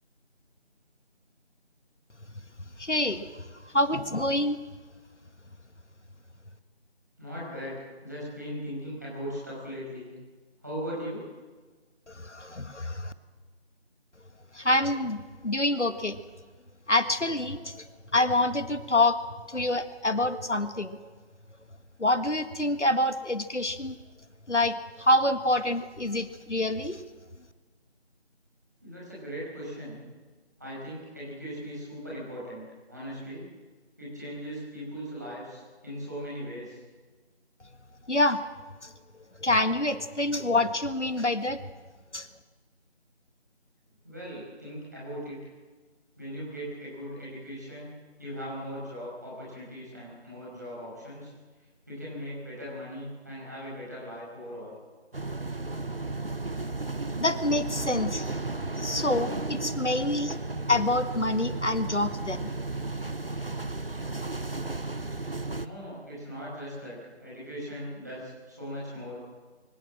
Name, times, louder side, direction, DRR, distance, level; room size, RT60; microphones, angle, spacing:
voice 1, 2.8-3.3 3.7-4.6 12.1-13.1 14.5-16.2 16.9-21.0 22.0-24.0 24.5-27.0 38.1-38.4 38.8-38.9 39.4-41.6 42.1-42.3 57.2-58.4 58.8-60.4 60.7-62.5, left 1 dB, 90° left, 11 dB, 1.8 m, -27 dB
voice 2, 7.2-10.1 10.6-11.2 28.8-30.0 30.6-33.4 34.0-36.8 39.4-39.5 44.0-45.4 46.2-47.9 48.2-51.3 51.9-54.8 65.6-69.2, equal, 15° right, -7 dB, 5.3 m, -39 dB
sound 1, 55.1-65.7, right 2 dB, 55° right, 0.9 m, -34 dB
24.0 x 16.5 x 7.6 m, 1.4 s
figure-of-eight pair, 175°, 34 cm